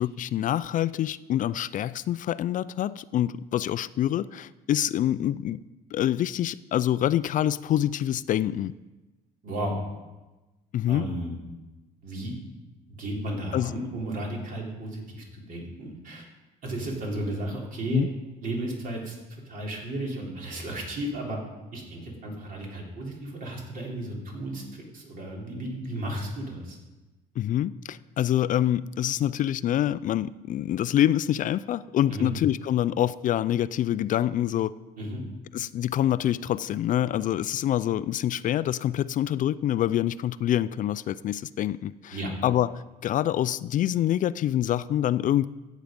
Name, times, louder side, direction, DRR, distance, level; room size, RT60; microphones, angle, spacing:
voice 1, 0.0-5.6 5.9-8.7 10.7-11.1 13.5-13.8 17.9-18.1 27.4-34.7 35.5-42.2 42.4-45.5, left 11 dB, 50° left, 16 dB, 0.4 m, -26 dB
voice 2, 9.4-9.8 10.9-11.3 12.0-12.4 12.9-16.2 16.6-18.0 18.4-19.2 19.5-21.4 21.7-26.8 32.1-32.3 35.0-35.2 42.1-42.3, right 1 dB, 55° right, -1 dB, 3.6 m, -34 dB
14.5 x 8.3 x 5.2 m, 1.1 s
cardioid pair, 110°, 17 cm